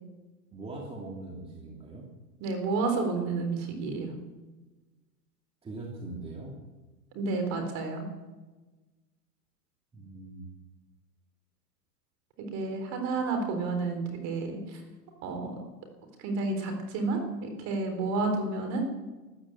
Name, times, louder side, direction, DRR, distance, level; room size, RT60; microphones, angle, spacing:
voice 1, 0.5-2.1 5.6-6.6 9.9-10.5, right 2 dB, 10° right, -2 dB, 2.7 m, -41 dB
voice 2, 2.4-4.1 7.1-8.0 12.5-14.6 15.2-15.6 16.2-18.8, right 3 dB, 35° right, 5 dB, 4.0 m, -30 dB
13.5 x 12.5 x 8.1 m, 1.2 s
hypercardioid pair, 130°, 47 cm